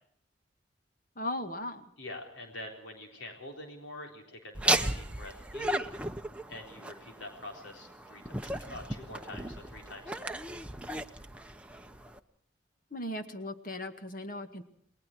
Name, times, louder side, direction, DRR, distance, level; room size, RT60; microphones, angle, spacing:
voice 1, 1.2-1.8 12.9-14.6, left 1 dB, 45° left, 7 dB, 2.0 m, -37 dB
voice 2, 2.0-5.9 6.5-10.4, left 1 dB, 90° left, 2 dB, 4.0 m, -46 dB
Laughter, 4.5-12.2, right 1 dB, 5° right, 0.9 m, -35 dB
30.0 x 20.5 x 4.6 m, 0.65 s
head